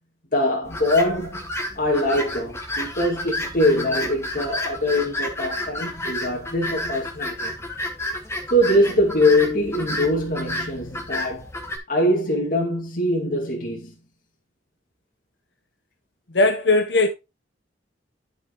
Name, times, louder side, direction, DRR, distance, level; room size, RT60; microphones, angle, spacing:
voice 1, 0.3-1.5 1.8-7.5 8.5-11.5 11.9-13.9, left 1 dB, 50° left, 2.4 m, -22 dB
sound 1, 0.7-11.8, left 1 dB, 15° left, 1.7 m, -31 dB
voice 2, 16.3-17.1, left 2 dB, 70° left, 1.0 m, -18 dB
12.0 x 5.3 x 3.0 m
head